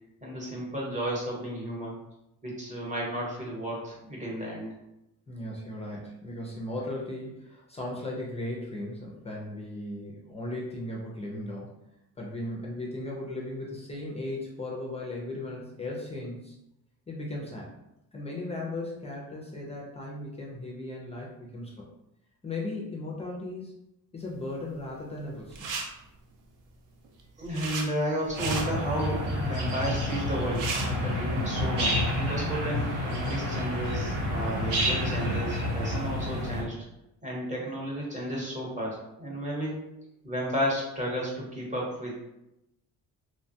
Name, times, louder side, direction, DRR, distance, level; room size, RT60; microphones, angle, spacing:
voice 1, 0.2-2.0 2.4-4.7 27.4-36.7 37.2-39.8 40.2-42.1, equal, 20° right, -3 dB, 0.8 m, -33 dB
voice 2, 5.3-11.7 12.2-16.6 17.1-17.7 18.1-21.9 22.4-23.7 24.1-25.6, left 1 dB, 20° left, -3 dB, 0.4 m, -37 dB
sound 1, 25.5-25.8 27.0-27.8 28.2-28.6 30.2-30.3 30.4-30.9, right 4 dB, 60° right, 0.5 m, -34 dB
sound 2, 28.4-36.6, left 1 dB, 80° right, 1.0 m, -29 dB
2.9 x 2.2 x 2.6 m, 0.88 s
cardioid pair, 145°, 35 cm